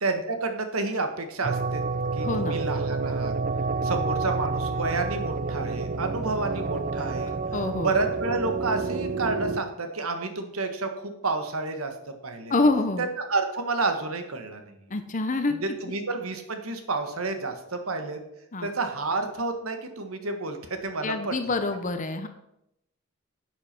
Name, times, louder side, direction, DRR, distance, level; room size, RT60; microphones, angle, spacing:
voice 1, 0.0-1.8 2.1-3.3 3.8-7.3 7.8-11.9 12.2-12.5 13.0-14.7 15.5-18.2 18.6-21.5, right 3 dB, 80° right, 6 dB, 1.6 m, -30 dB
sound 1, 1.4-9.6, right 4 dB, 40° right, 0.5 m, -29 dB
voice 2, 2.2-2.6 7.5-7.9 12.5-13.1 14.9-15.6 18.5-18.7 21.0-22.3, left 3 dB, 35° left, 8 dB, 0.8 m, -26 dB
10.5 x 8.2 x 6.0 m, 0.82 s
head